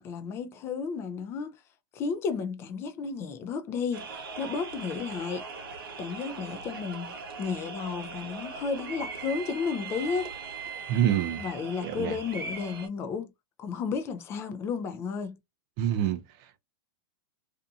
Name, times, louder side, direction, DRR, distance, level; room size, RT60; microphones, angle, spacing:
voice 1, 0.0-1.5 1.9-5.4 6.0-10.3 11.4-13.3 13.6-15.4, left 5 dB, 20° left, 0.4 m, -33 dB
sound 1, 3.9-12.9, right 4 dB, 75° right, 1.1 m, -40 dB
voice 2, 10.9-11.4 11.8-12.2 15.8-16.6, right 10 dB, 35° right, 0.5 m, -27 dB
2.6 x 2.6 x 2.3 m
supercardioid pair, 155°, 12 cm